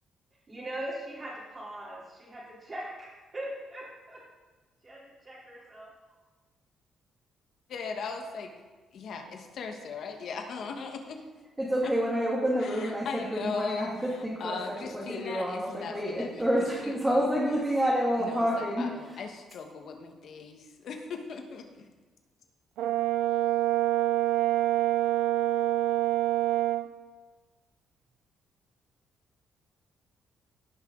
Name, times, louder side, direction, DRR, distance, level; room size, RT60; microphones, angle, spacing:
voice 1, 0.5-4.2 4.8-5.9, right 1 dB, 35° right, -10 dB, 3.4 m, -40 dB
voice 2, 7.7-8.5 8.9-11.2 11.8-11.9 12.6-16.5 16.8-17.6 18.2-21.9, left 5 dB, 65° left, 5 dB, 1.4 m, -38 dB
voice 3, 11.6-14.6 14.9-18.9, equal, 10° right, -6 dB, 2.2 m, -28 dB
Brass instrument, 22.8-26.9, right 14 dB, 85° right, 0.4 m, -26 dB
17.0 x 6.0 x 3.9 m, 1.3 s
cardioid pair, 90°, 0 cm